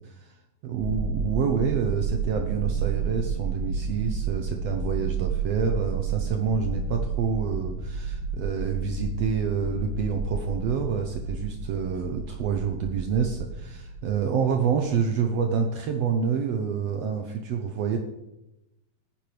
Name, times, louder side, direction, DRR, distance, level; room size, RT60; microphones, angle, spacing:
voice 1, 0.6-18.0, right 6 dB, 75° right, 4 dB, 1.5 m, -27 dB
sound 1, 0.8-15.0, right 5 dB, 10° right, 3.1 m, -31 dB
17.0 x 8.9 x 3.3 m, 0.92 s
omnidirectional pair, 3.8 m